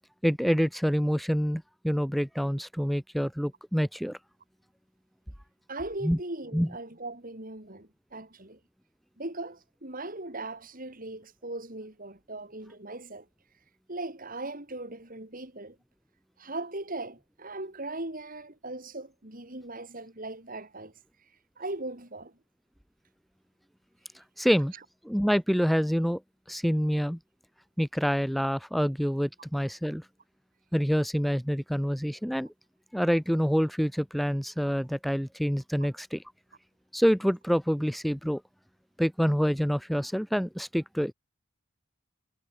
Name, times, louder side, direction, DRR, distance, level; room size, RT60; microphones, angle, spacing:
voice 1, 0.2-4.2 6.0-6.2 6.5-6.7 24.4-24.7 25.0-26.2 26.5-27.2 27.8-30.0 30.7-32.5 32.9-36.2 36.9-38.4 39.0-41.1, equal, ahead, 3.0 m, -27 dB
voice 2, 5.7-8.6 9.2-13.3 13.9-15.8 16.4-20.9 21.6-22.3, right 2 dB, 40° right, 4.9 m, -39 dB
head